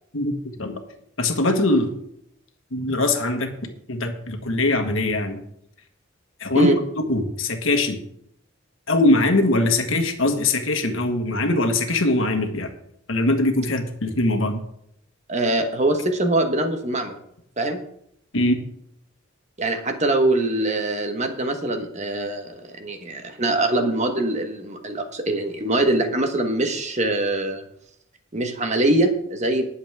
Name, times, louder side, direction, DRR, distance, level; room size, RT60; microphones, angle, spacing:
voice 1, 0.1-0.8 1.2-1.9 2.7-3.5 3.9-5.4 6.4-6.7 7.0-8.0 8.9-12.7 13.1-14.6 18.3-18.6, left 2 dB, 70° left, 5 dB, 1.6 m, -22 dB
voice 2, 15.3-17.1 17.6-17.8 19.6-27.6 28.3-29.6, right 2 dB, 35° right, 5 dB, 1.3 m, -23 dB
20.0 x 7.3 x 3.6 m, 0.73 s
head